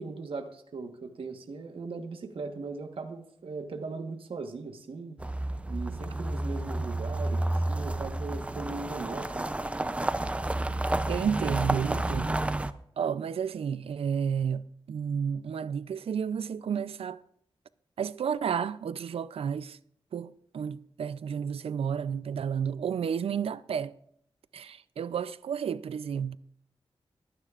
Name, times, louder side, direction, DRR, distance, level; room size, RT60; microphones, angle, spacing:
voice 1, 0.0-5.2 5.7-9.5, right 4 dB, 70° right, 1.3 m, -39 dB
sound 1, 5.2-12.7, right 1 dB, 15° right, 0.5 m, -30 dB
voice 2, 11.1-12.7 13.0-17.2 18.0-19.8 20.1-24.0 24.5-26.4, right 7 dB, 85° right, 0.5 m, -31 dB
22.5 x 10.0 x 2.5 m
wide cardioid pair, 135°, 10 cm